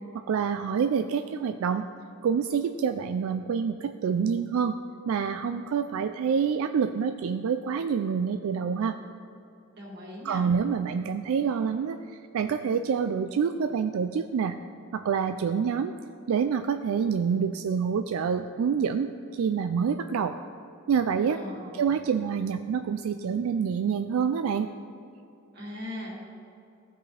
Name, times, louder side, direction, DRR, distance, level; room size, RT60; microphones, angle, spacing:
voice 1, 0.1-1.9 2.2-4.8 5.1-9.0 10.2-14.6 14.9-15.9 16.3-20.4 20.9-21.4 21.7-24.7, right 6 dB, 85° right, 8 dB, 0.3 m, -27 dB
voice 2, 9.8-10.4 21.3-21.8 25.5-26.1, left 1 dB, 50° right, -4 dB, 2.2 m, -39 dB
15.0 x 5.3 x 3.3 m, 2.8 s
head